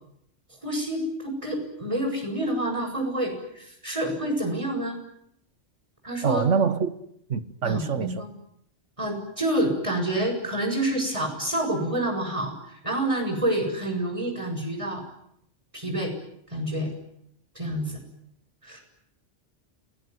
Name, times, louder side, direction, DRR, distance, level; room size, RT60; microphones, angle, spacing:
voice 1, 0.6-5.0 6.0-6.5 7.6-8.3 9.0-15.0 15.7-16.1 16.5-16.9 17.6-18.0 18.6-18.8, right 1 dB, 25° right, 7.4 m, -28 dB
voice 2, 6.2-6.9 7.3-8.2, right 6 dB, 80° right, 1.8 m, -25 dB
28.5 x 19.5 x 9.6 m
omnidirectional pair, 1.3 m